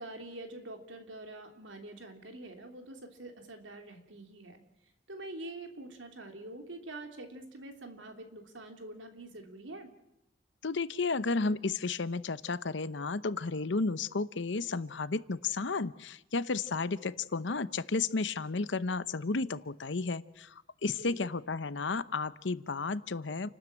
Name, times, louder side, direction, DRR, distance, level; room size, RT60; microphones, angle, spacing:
voice 1, 0.0-4.6 5.1-9.9 20.8-21.3, right 2 dB, 90° right, 5 dB, 3.1 m, -45 dB
voice 2, 10.6-20.5 20.8-23.5, left 3 dB, 70° left, 16 dB, 0.8 m, -32 dB
29.0 x 12.5 x 8.9 m, 0.88 s
head